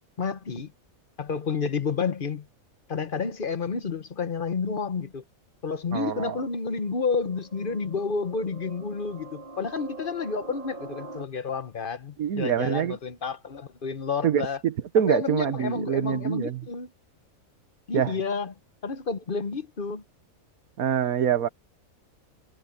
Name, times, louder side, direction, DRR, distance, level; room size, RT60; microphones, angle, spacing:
voice 1, 0.2-0.7 1.2-2.5 2.9-5.2 5.6-14.6 15.1-16.9 17.9-18.5 18.8-20.0, left 5 dB, 40° left, 1.2 m, -30 dB
voice 2, 5.9-6.4 12.2-13.0 14.2-16.6 17.9-18.2 20.8-21.5, right 9 dB, 80° right, 1.5 m, -25 dB
sound 1, 6.3-11.2, right 3 dB, 35° right, 4.0 m, -44 dB
omnidirectional pair, 1.5 m